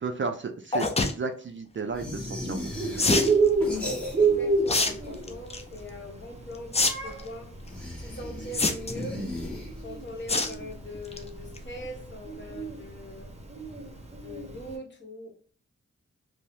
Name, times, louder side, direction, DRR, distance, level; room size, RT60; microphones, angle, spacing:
voice 1, 0.0-3.1, right 4 dB, 40° right, 6 dB, 0.4 m, -34 dB
sound 1, 0.7-1.1 3.0-3.3 4.7-4.9 5.3-5.6 6.7-6.9 7.2-7.3 8.5-9.0 10.3-10.5 10.9-11.2 11.6-11.7 11.8-11.9, left 3 dB, 20° left, 0.4 m, -24 dB
sound 2, 1.9-4.5 4.8-5.6 7.6-10.1, left 1 dB, 5° left, 1.3 m, -36 dB
Bird, 2.6-14.7, right 4 dB, 20° right, 0.8 m, -30 dB
voice 2, 4.2-7.5 8.0-9.2 9.8-13.3 14.0-15.4, left 1 dB, 40° left, 2 dB, 0.9 m, -41 dB
2.6 x 2.0 x 3.3 m, 0.41 s
cardioid pair, 55°, 29 cm